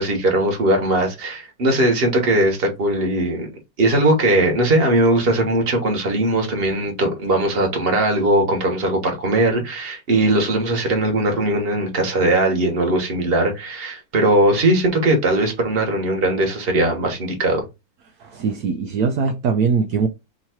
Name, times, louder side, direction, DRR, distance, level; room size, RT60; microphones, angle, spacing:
voice 1, 0.0-3.5 3.8-17.6, right 1 dB, 35° right, 1.3 m, -19 dB
voice 2, 18.2-20.1, right 5 dB, 70° right, 0.9 m, -21 dB
3.7 x 2.9 x 4.4 m
omnidirectional pair, 2.0 m